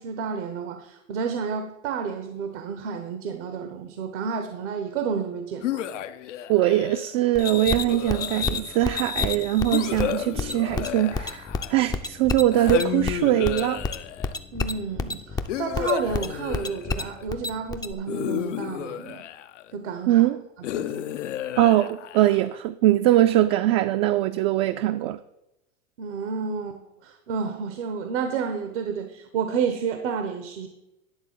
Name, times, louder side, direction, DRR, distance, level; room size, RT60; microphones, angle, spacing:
voice 1, 0.0-6.0 14.5-19.2 19.7-20.3 20.7-21.1 26.0-30.7, right 6 dB, 75° right, 1.1 m, -31 dB
sound 1, 5.6-7.1 7.9-8.8 9.7-11.9 12.5-14.4 15.5-17.2 18.1-19.7 20.6-22.6, left 11 dB, 90° left, 0.6 m, -32 dB
voice 2, 6.5-13.8 20.1-20.4 21.6-25.2, right 14 dB, 55° right, 0.5 m, -22 dB
Feedback Loop Does Techno, 7.4-17.9, left 4 dB, 10° left, 0.4 m, -30 dB
10.5 x 3.8 x 7.3 m
supercardioid pair, 115°, 35 cm